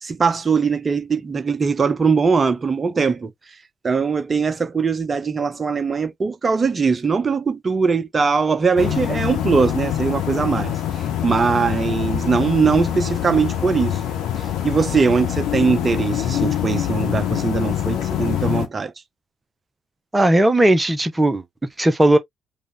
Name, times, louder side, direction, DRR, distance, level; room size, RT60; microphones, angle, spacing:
voice 1, 0.0-3.3 3.8-10.7 11.2-14.0 14.6-18.9, right 5 dB, 30° right, 0.7 m, -20 dB
sound 1, 8.8-18.7, left 11 dB, 60° left, 1.3 m, -24 dB
voice 2, 20.1-21.4 21.8-22.2, right 1 dB, 15° right, 1.2 m, -16 dB
5.0 x 2.6 x 3.6 m
figure-of-eight pair, 45°, 0 cm